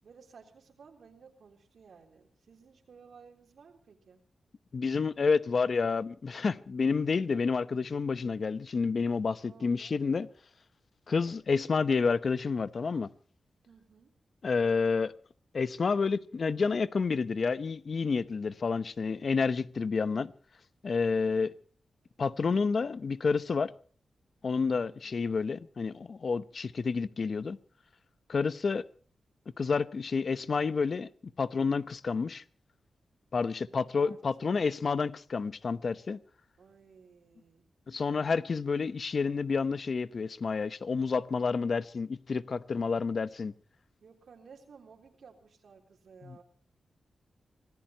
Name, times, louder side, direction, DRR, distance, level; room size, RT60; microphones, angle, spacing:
voice 1, 0.0-4.2 9.4-10.0 11.1-11.4 13.7-14.1 24.8-25.2 33.7-34.7 36.6-37.7 44.0-46.4, right 5 dB, 70° right, 3.5 m, -56 dB
voice 2, 4.7-10.3 11.1-13.1 14.4-15.1 15.5-20.3 20.8-21.5 22.2-23.7 24.4-27.6 28.3-28.8 29.6-31.1 31.4-32.4 33.3-36.2 37.9-43.5 46.2-46.4, left 5 dB, 50° left, 0.9 m, -29 dB
26.0 x 18.0 x 2.9 m
wide cardioid pair, 115°, 0 cm